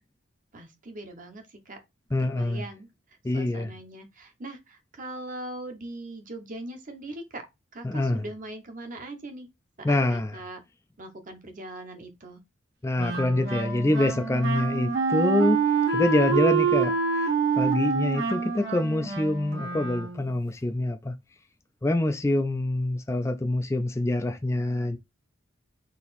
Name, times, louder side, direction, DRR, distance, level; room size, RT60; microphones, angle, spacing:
voice 1, 0.5-1.8 2.2-2.9 3.3-7.4 7.7-9.5 9.9-10.6 11.0-12.4, right 1 dB, 40° right, 1.0 m, -40 dB
voice 2, 2.1-2.6 3.2-3.7 7.8-8.2 9.8-10.4 12.8-15.6 15.9-17.3 17.6-21.1 21.8-25.0, left 1 dB, 15° left, 0.4 m, -25 dB
Wind instrument woodwind instrument, 13.0-20.3, right 5 dB, 55° right, 1.4 m, -26 dB
4.1 x 2.8 x 4.1 m
head